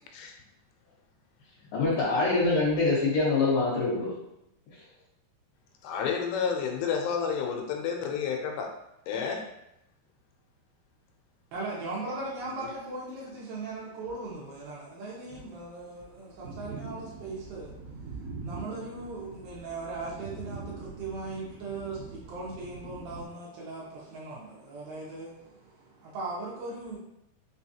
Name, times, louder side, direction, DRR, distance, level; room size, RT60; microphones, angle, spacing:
voice 1, 1.7-4.2, left 3 dB, 65° left, 2.7 m, -25 dB
voice 2, 5.8-8.7 9.1-9.5, left 6 dB, 85° left, 2.7 m, -30 dB
voice 3, 11.5-27.0, right 3 dB, 75° right, 2.3 m, -39 dB
sound 1, 16.4-23.2, right 4 dB, 60° right, 1.9 m, -43 dB
6.0 x 2.3 x 2.8 m
omnidirectional pair, 4.7 m